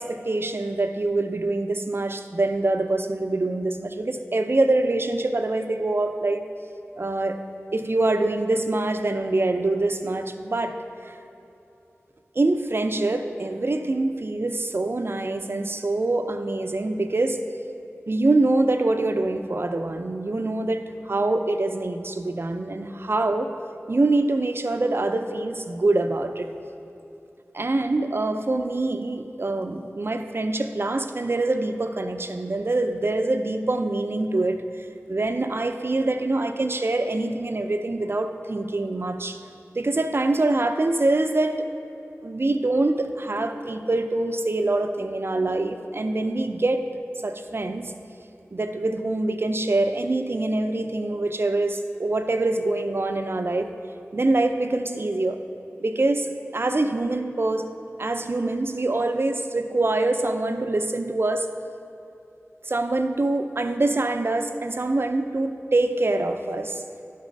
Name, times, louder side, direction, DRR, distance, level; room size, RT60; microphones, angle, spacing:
voice 1, 0.0-6.4 7.0-7.4 7.7-10.8 11.1-11.2 12.4-17.4 18.1-23.5 23.9-26.5 27.5-39.4 39.8-41.7 42.2-46.9 47.2-47.9 48.5-53.7 54.1-55.4 55.8-57.7 58.0-61.5 62.6-66.8, right 2 dB, 55° right, 7 dB, 0.5 m, -25 dB
11.5 x 4.1 x 5.2 m, 2.9 s
wide cardioid pair, 60°, 5 cm